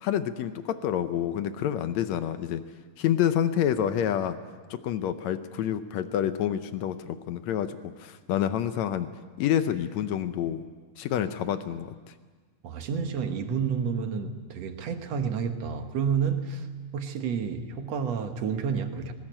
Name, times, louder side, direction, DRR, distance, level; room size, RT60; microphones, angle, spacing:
voice 1, 0.0-2.6 3.0-4.4 4.7-9.1 9.4-10.6 11.0-11.9, left 10 dB, 75° left, 11 dB, 1.7 m, -28 dB
voice 2, 12.6-16.7 16.9-19.1, right 6 dB, 60° right, 6 dB, 2.1 m, -30 dB
20.0 x 19.0 x 8.9 m, 1.5 s
omnidirectional pair, 3.9 m